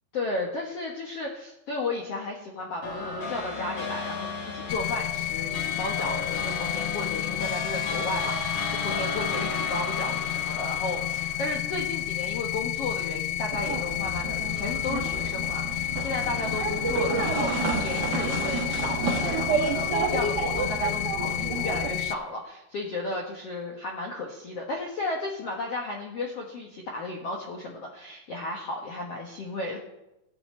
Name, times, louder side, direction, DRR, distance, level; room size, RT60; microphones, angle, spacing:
voice 1, 0.1-29.8, left 2 dB, 75° left, -1 dB, 1.4 m, -34 dB
sound 1, 2.8-12.5, left 3 dB, 55° left, 1.7 m, -35 dB
sound 2, 4.7-22.1, left 13 dB, 90° left, 2.8 m, -31 dB
sound 3, 13.5-21.9, right 4 dB, 80° right, 0.9 m, -30 dB
18.0 x 7.9 x 4.3 m, 0.90 s
omnidirectional pair, 4.9 m